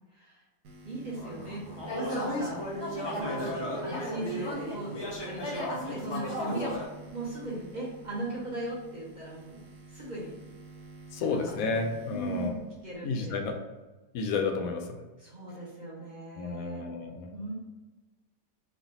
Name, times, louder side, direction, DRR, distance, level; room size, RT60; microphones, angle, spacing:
sound 1, 0.6-13.6, right 3 dB, 85° right, 1.3 m, -49 dB
voice 1, 0.8-1.7 1.9-2.6 3.1-3.6 3.8-6.7 7.1-9.6 9.9-10.4 11.2-13.4 15.2-16.8 17.3-17.5, right 1 dB, 35° right, -6 dB, 0.9 m, -38 dB
sound 2, 1.1-6.8, left 1 dB, 45° left, 0.3 m, -34 dB
voice 2, 11.1-12.6 13.0-13.6 14.1-15.0 16.4-17.3, left 4 dB, 70° left, 3 dB, 0.9 m, -31 dB
3.2 x 2.5 x 4.0 m, 1.2 s
omnidirectional pair, 1.7 m